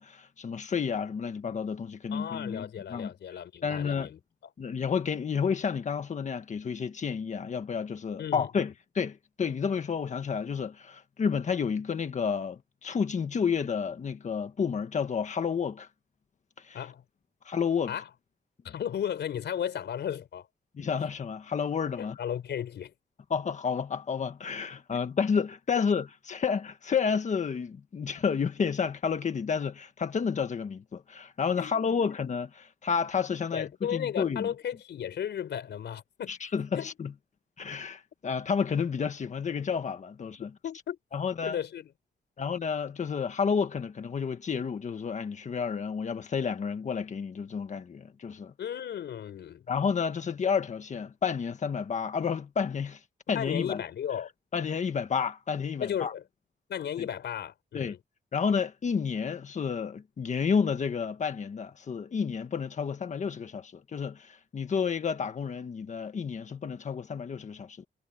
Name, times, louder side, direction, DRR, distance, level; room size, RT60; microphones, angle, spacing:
voice 1, 0.0-3.1 3.6-4.1 4.6-15.9 16.6-16.8 17.4-18.0 20.8-22.2 23.3-34.5 36.3-37.1 37.6-40.5 41.1-41.6 42.4-48.5 49.7-53.0 53.3-53.8 54.5-56.1 57.7-57.9 58.3-67.9, left 6 dB, 45° left, 1.5 m, -30 dB
voice 2, 2.1-4.5 8.2-8.5 16.7-17.0 17.9-18.1 18.6-20.5 22.0-22.9 31.6-32.2 33.5-36.4 36.7-36.9 40.6-41.0 41.4-41.9 48.6-49.7 53.3-54.3 55.8-56.2 56.7-58.0, left 9 dB, 80° left, 4.7 m, -35 dB
wide cardioid pair, 155°, 18 cm